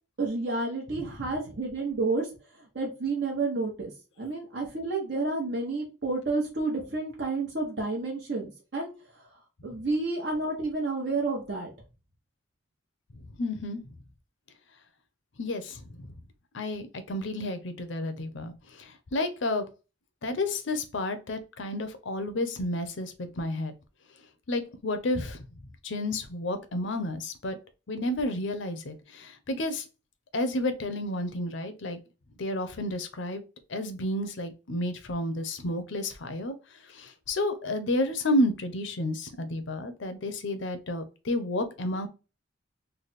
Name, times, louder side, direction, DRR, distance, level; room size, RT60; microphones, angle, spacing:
voice 1, 0.2-2.3 2.6-3.9 4.2-8.9 9.2-9.3 9.6-11.7, right 3 dB, 60° right, -2 dB, 1.0 m, -30 dB
voice 2, 13.2-13.8 15.4-16.1 16.5-19.7 20.2-23.7 24.5-25.5 25.8-27.6 27.9-29.8 30.3-32.0 32.4-33.4 33.7-36.6 36.9-42.1, left 1 dB, 70° left, 9 dB, 0.6 m, -31 dB
3.3 x 2.2 x 4.0 m, 0.31 s
head